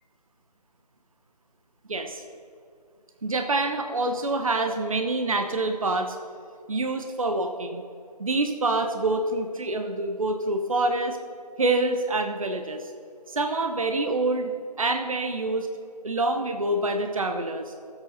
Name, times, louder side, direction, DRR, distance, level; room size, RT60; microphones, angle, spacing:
voice 1, 1.9-2.2 3.2-6.2 6.7-7.8 8.2-11.2 11.6-12.9 13.3-14.5 14.8-15.7 16.0-17.7, right 2 dB, 55° right, 6 dB, 0.9 m, -26 dB
17.5 x 8.0 x 4.1 m, 2.5 s
figure-of-eight pair, 155°, 21 cm